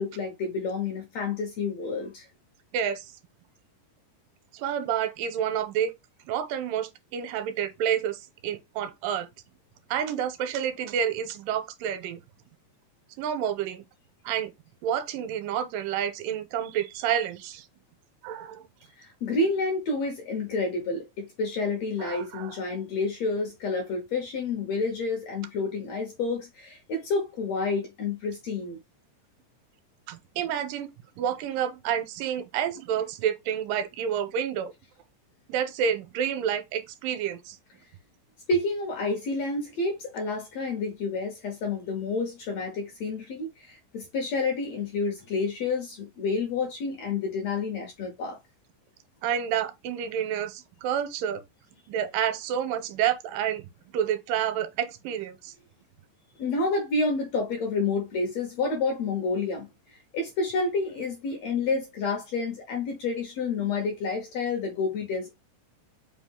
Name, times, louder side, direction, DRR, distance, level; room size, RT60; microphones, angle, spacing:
voice 1, 0.0-2.3 19.0-28.8 38.5-48.4 56.4-65.3, left 3 dB, 75° left, 1.6 m, -29 dB
voice 2, 2.7-3.1 4.5-5.9 6.3-9.3 9.9-12.2 13.2-13.8 14.3-14.5 14.8-17.7 18.2-18.6 22.0-22.6 30.1-30.9 31.2-34.7 35.5-37.6 49.2-51.4 51.9-53.6 53.9-55.5, right 9 dB, 85° right, 2.2 m, -29 dB
5.2 x 2.3 x 3.5 m
omnidirectional pair, 3.9 m